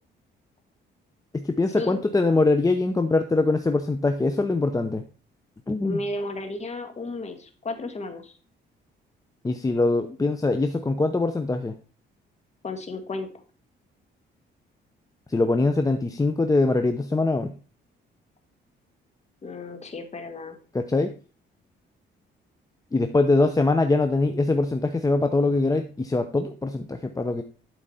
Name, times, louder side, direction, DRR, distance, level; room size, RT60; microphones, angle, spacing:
voice 1, 1.3-5.0 5.7-6.0 9.4-11.8 15.3-17.5 20.7-21.1 22.9-27.4, left 2 dB, 15° left, 7 dB, 0.8 m, -23 dB
voice 2, 5.8-8.3 12.6-13.3 19.4-20.6, left 2 dB, 35° left, 6 dB, 1.7 m, -33 dB
11.0 x 4.9 x 4.2 m, 0.38 s
cardioid pair, 90°, 20 cm